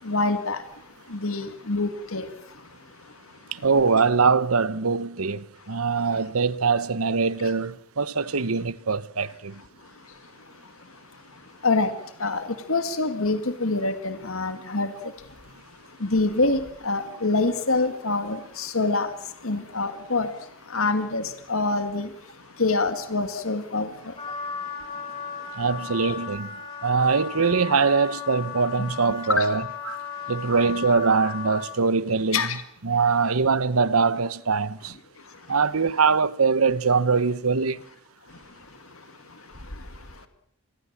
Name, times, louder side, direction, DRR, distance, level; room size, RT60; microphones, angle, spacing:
voice 1, 0.0-3.7 5.6-5.8 6.1-6.2 7.4-7.5 9.8-25.7 26.0-26.1 29.2-29.5 30.2-30.3 32.3-32.6 35.2-35.6 38.3-40.3, left 3 dB, 75° left, 2.0 m, -28 dB
voice 2, 3.5-9.6 25.6-26.5 26.8-30.0 30.3-32.4 32.8-34.9 35.5-37.8, right 5 dB, 85° right, 1.0 m, -23 dB
Wind instrument woodwind instrument, 24.2-31.7, left 7 dB, 25° left, 7.3 m, -36 dB
27.0 x 21.5 x 7.4 m
head